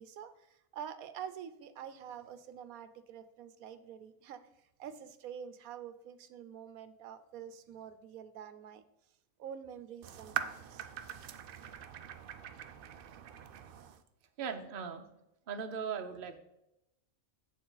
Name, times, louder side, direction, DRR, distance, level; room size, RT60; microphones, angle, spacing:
voice 1, 0.0-4.4 4.8-8.8 9.4-10.9 12.5-12.6, right 8 dB, 85° right, 12 dB, 1.1 m, -47 dB
sound 1, 10.0-14.0, right 9 dB, 65° right, 0.5 m, -42 dB
voice 2, 14.4-15.1 15.5-16.4, right 6 dB, 45° right, 6 dB, 0.8 m, -38 dB
8.0 x 7.0 x 3.9 m, 0.86 s
omnidirectional pair, 1.5 m